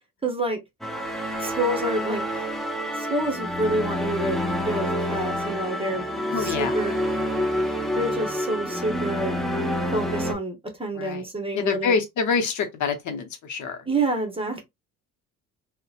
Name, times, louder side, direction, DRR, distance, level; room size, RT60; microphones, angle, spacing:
voice 1, 0.2-0.6 1.4-2.2 2.9-6.0 6.3-7.0 7.9-9.4 9.9-11.9 13.8-14.6, right 2 dB, 15° right, 0.8 m, -28 dB
sound 1, 0.8-10.3, equal, ahead, 0.4 m, -28 dB
voice 2, 6.3-6.7 11.0-11.2 11.5-13.8, left 5 dB, 60° left, 0.7 m, -26 dB
2.7 x 2.1 x 2.4 m
cardioid pair, 100°, 33 cm